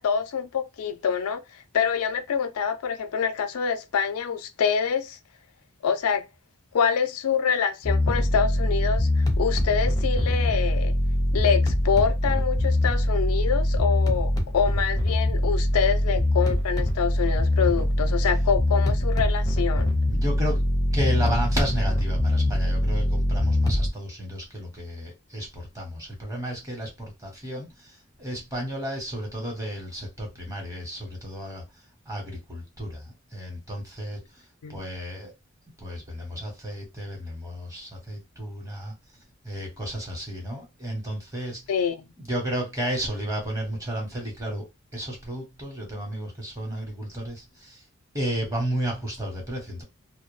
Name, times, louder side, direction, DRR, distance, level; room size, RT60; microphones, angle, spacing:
voice 1, 0.0-5.2 5.8-6.2 6.7-10.9 11.3-19.9 34.6-34.8 41.7-42.1, left 6 dB, 85° left, 0.4 m, -26 dB
sound 1, 7.8-23.9, left 1 dB, 15° left, 0.5 m, -23 dB
voice 2, 20.1-20.6 20.9-31.6 32.1-34.2 34.7-35.3 35.8-38.9 39.4-41.6 42.3-44.7 44.9-47.8 48.1-49.8, equal, 15° right, 0.9 m, -32 dB
2.3 x 2.1 x 3.0 m
head